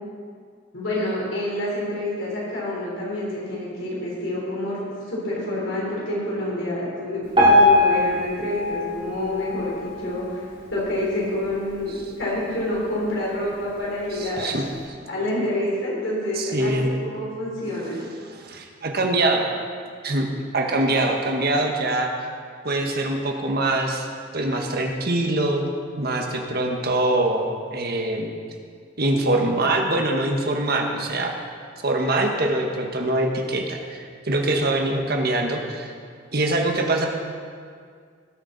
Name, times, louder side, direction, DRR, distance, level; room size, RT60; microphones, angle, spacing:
voice 1, 0.7-4.8 5.1-10.4 10.7-14.6 15.1-17.9, left 1 dB, 75° left, -5 dB, 4.0 m, -27 dB
Piano, 7.3-10.5 11.0-11.1 11.4-11.5 12.2-12.3 12.9-13.0, left 1 dB, 30° right, 3.5 m, -20 dB
voice 2, 14.1-14.6 16.3-16.9 18.2-19.5 20.0-22.1 22.6-24.1 24.3-25.6 26.0-28.3 29.0-31.3 31.8-35.9 36.3-37.1, right 2 dB, 55° right, 2 dB, 1.5 m, -23 dB
19.0 x 8.3 x 4.1 m, 2.1 s
head